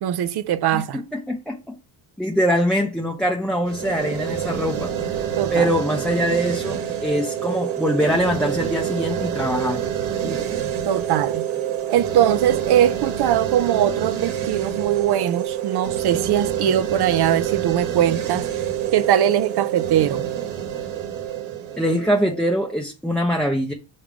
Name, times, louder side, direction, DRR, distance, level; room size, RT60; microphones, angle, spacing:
voice 1, 0.0-1.0 5.4-5.7 10.8-11.5 11.9-18.5 18.9-20.3, right 11 dB, 55° right, 0.7 m, -21 dB
voice 2, 0.7-1.8 2.2-4.9 5.5-9.8 10.2-10.4 21.8-23.7, equal, ahead, 0.8 m, -23 dB
sound 1, 3.6-22.7, right 10 dB, 90° right, 1.5 m, -27 dB
5.9 x 3.3 x 5.0 m
cardioid pair, 115°, 47 cm